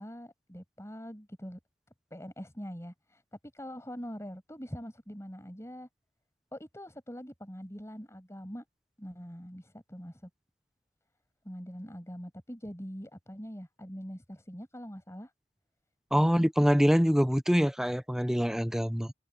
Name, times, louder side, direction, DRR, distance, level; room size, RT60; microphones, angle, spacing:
voice 1, 0.0-1.6 2.1-3.2 3.5-5.9 6.5-8.6 9.0-10.3 11.4-15.3 16.1-16.5, equal, 15° left, 7.3 m, -43 dB
voice 2, 16.1-19.1, equal, 5° right, 0.9 m, -25 dB
open air
head